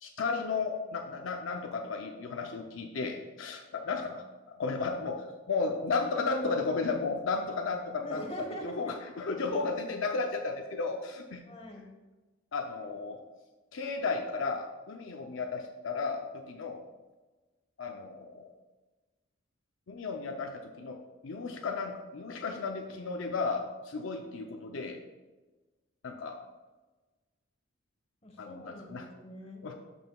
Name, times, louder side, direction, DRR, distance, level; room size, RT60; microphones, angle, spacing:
voice 1, 0.0-8.2 8.6-11.4 12.5-13.2 13.7-16.8 17.8-18.5 19.9-21.0 21.2-25.0 26.0-26.4 28.4-29.1 29.6-29.7, left 4 dB, 70° left, 3 dB, 0.6 m, -34 dB
voice 2, 8.0-9.7 11.5-11.9 28.2-29.6, equal, 30° left, 2 dB, 1.1 m, -43 dB
11.5 x 5.5 x 2.3 m, 1.2 s
head